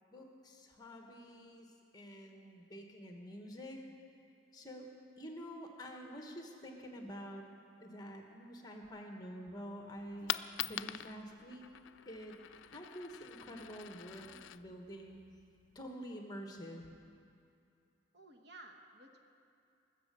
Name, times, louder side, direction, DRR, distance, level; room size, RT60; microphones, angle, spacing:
voice 1, 0.1-1.7 1.9-3.8 4.5-4.9 5.2-7.5 7.8-10.4 10.7-11.6 12.0-15.2 15.7-16.8, equal, 20° left, 2 dB, 1.2 m, -48 dB
Coin (dropping), 10.0-15.9, left 12 dB, 80° left, 0.3 m, -45 dB
voice 2, 18.1-19.2, right 2 dB, 60° right, 4 dB, 1.2 m, -55 dB
20.5 x 7.5 x 6.8 m, 2.5 s
head